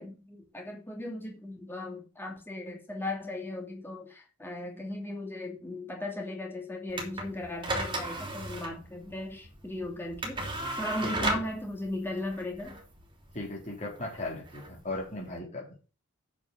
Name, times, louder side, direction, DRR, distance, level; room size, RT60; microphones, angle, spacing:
voice 1, 0.0-10.4 10.8-12.8, left 1 dB, 10° left, 0 dB, 2.6 m, -37 dB
sound 1, 6.9-15.4, right 1 dB, 25° right, 3.1 m, -36 dB
voice 2, 13.3-15.7, left 2 dB, 35° left, -2 dB, 4.1 m, -37 dB
7.3 x 6.7 x 6.8 m, 0.34 s
head